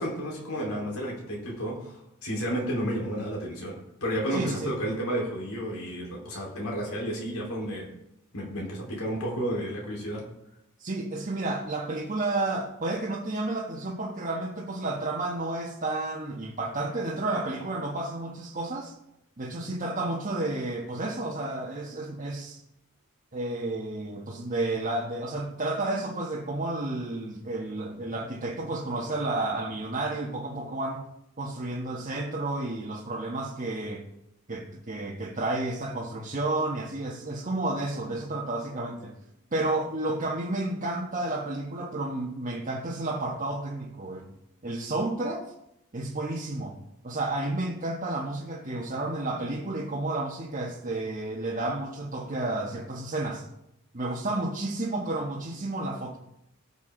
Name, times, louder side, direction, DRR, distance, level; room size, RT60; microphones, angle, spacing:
voice 1, 0.0-7.9 8.3-10.3, equal, 85° left, 4.2 m, -32 dB
voice 2, 4.3-4.8 10.8-19.0 19.4-22.6 23.3-31.1 31.4-34.0 34.5-39.2 39.5-44.3 44.6-45.4 45.9-46.8 47.0-53.5 53.9-56.2, right 2 dB, 40° right, 1.3 m, -31 dB
18.5 x 7.0 x 3.9 m
head